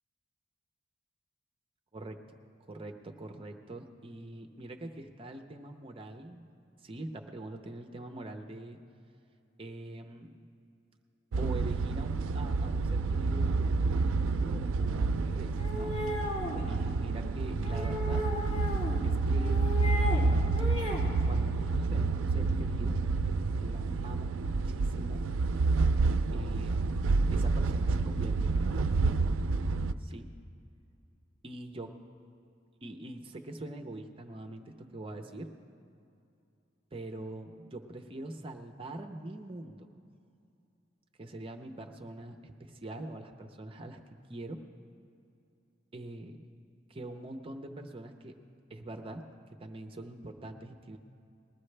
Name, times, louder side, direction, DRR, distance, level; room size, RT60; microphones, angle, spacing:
voice 1, 2.7-6.5 6.8-8.8 9.6-10.3 11.4-16.0 16.7-18.2 19.0-20.0 21.3-23.0 23.6-25.2 26.3-27.0 27.3-29.2 30.0-30.3 31.4-31.9 32.8-35.5 36.9-39.9 41.2-44.0 44.3-44.6 45.9-46.5 46.9-48.3 48.7-49.2 49.6-51.0, right 1 dB, 30° right, 4 dB, 0.6 m, -43 dB
sound 1, 11.3-29.9, right 3 dB, 85° right, 0.4 m, -29 dB
sound 2, 15.6-16.7 17.6-19.0 19.3-20.2 20.5-21.1, left 1 dB, 35° left, 2.8 m, -36 dB
20.5 x 13.0 x 3.3 m, 2.6 s
head